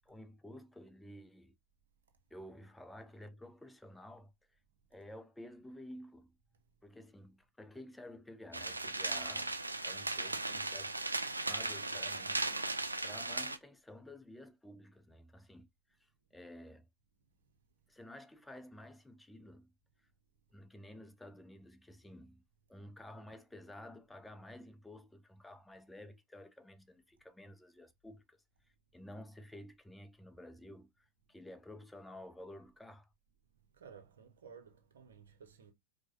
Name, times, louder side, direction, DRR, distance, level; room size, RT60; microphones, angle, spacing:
voice 1, 0.1-1.5 2.3-4.3 4.9-6.3 6.8-9.5 9.8-10.9 11.4-15.7 16.3-16.8 17.9-19.7 20.5-22.4 22.7-28.4 28.9-30.9 31.3-33.1, left 1 dB, 5° left, 0.5 m, -52 dB
sound 1, 8.5-13.6, right 2 dB, 80° right, 0.3 m, -37 dB
voice 2, 33.7-35.7, right 6 dB, 65° right, 0.8 m, -55 dB
4.6 x 2.2 x 2.5 m
figure-of-eight pair, 90°, 0 cm